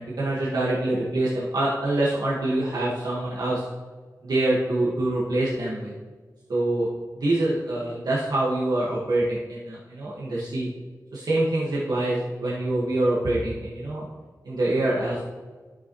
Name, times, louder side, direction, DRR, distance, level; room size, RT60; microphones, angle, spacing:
voice 1, 0.0-3.6 4.2-5.9 6.5-6.9 7.2-10.7 11.1-14.1 14.5-15.3, right 1 dB, 75° right, -7 dB, 1.8 m, -25 dB
11.5 x 6.9 x 3.2 m, 1.4 s
wide cardioid pair, 85°, 7 cm